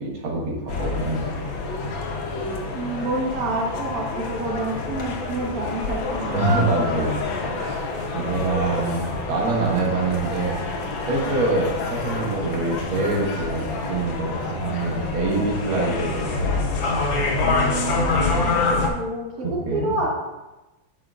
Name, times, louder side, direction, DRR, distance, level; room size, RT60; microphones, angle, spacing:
voice 1, 0.0-1.4 6.3-7.2 7.6-7.8 8.1-10.6 11.1-16.7 19.4-20.0, right 3 dB, 85° right, -3 dB, 2.3 m, -25 dB
sound 1, 0.7-18.9, left 3 dB, 75° left, 1.7 m, -27 dB
voice 2, 2.7-6.6 11.1-11.3 17.4-20.1, right 2 dB, 50° right, -2 dB, 1.7 m, -29 dB
9.9 x 6.6 x 2.5 m, 1.1 s
omnidirectional pair, 2.2 m